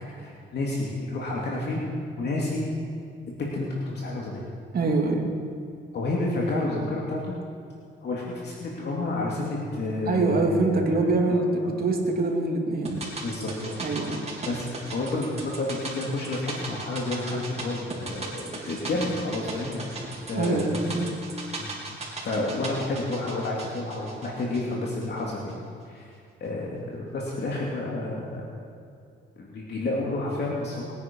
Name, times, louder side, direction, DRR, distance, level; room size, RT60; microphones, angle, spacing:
voice 1, 0.1-1.9 2.2-2.7 3.5-4.5 5.9-7.3 8.0-11.7 13.2-14.1 14.5-21.0 21.6-22.0 22.2-25.5 25.9-26.1 26.4-28.5 29.4-30.8, left 2 dB, 55° left, -4 dB, 2.8 m, -30 dB
voice 2, 4.7-5.3 10.1-13.0 13.8-14.2 20.3-21.1, right 3 dB, 50° right, 1 dB, 2.6 m, -24 dB
sound 1, 12.8-25.2 25.5-25.6, right 3 dB, 30° right, 3.7 m, -38 dB
21.5 x 9.6 x 5.5 m, 2.4 s
cardioid pair, 90°, 20 cm